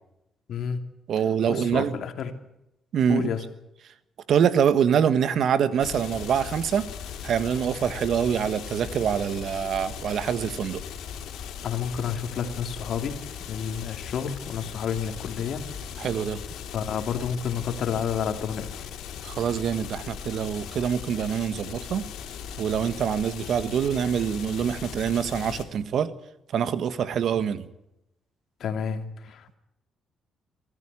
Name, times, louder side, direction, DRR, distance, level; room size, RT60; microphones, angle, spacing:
voice 1, 0.5-0.8 1.5-2.3 3.1-3.4 11.6-13.2 13.5-15.6 16.7-18.9 28.6-29.6, left 7 dB, 65° left, 6 dB, 2.8 m, -30 dB
voice 2, 1.1-2.0 2.9-3.3 4.3-6.8 7.2-10.8 16.0-16.4 19.2-22.0 22.6-26.1 26.5-27.7, right 8 dB, 65° right, 13 dB, 1.5 m, -25 dB
sound 1, 5.8-25.6, left 8 dB, 85° left, 3.7 m, -38 dB
24.5 x 14.0 x 9.9 m, 0.85 s
cardioid pair, 90°, 0 cm